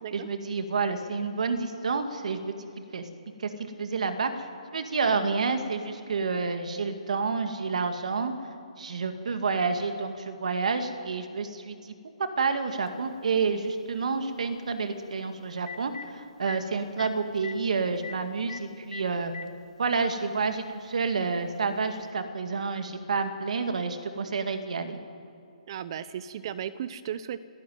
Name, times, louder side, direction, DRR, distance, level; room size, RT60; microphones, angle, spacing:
voice 1, 0.1-2.6 2.9-3.1 3.4-4.5 4.7-8.3 8.8-11.9 12.2-19.3 19.8-25.0, right 4 dB, 70° right, 7 dB, 2.1 m, -29 dB
Telephone, 12.9-13.0 15.1-15.2 15.5-16.1 16.5-16.6 17.0-17.1 17.4-17.5 18.0-18.1 18.5-18.6 18.9-19.5 20.5-20.6 22.0-22.1, left 6 dB, 70° left, 1.0 m, -39 dB
voice 2, 25.7-27.4, right 9 dB, 40° right, 15 dB, 0.8 m, -35 dB
28.0 x 12.0 x 9.4 m, 2.5 s
hypercardioid pair, 155°, 4 cm